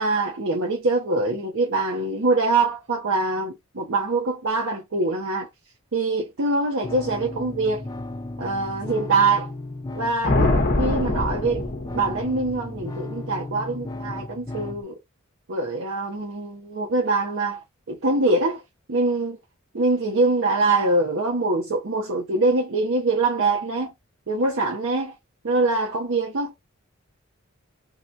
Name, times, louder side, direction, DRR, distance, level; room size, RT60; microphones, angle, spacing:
voice 1, 0.0-5.5 5.9-7.8 8.4-9.5 9.9-11.6 11.9-15.0 15.5-18.6 18.9-19.4 19.7-23.9 24.3-25.1 25.4-26.6, right 3 dB, 65° right, 0.8 m, -24 dB
sound 1, 6.8-14.8, left 2 dB, 20° left, 0.4 m, -35 dB
sound 2, 10.2-12.5, left 2 dB, 45° left, 0.9 m, -23 dB
2.9 x 2.2 x 3.8 m
head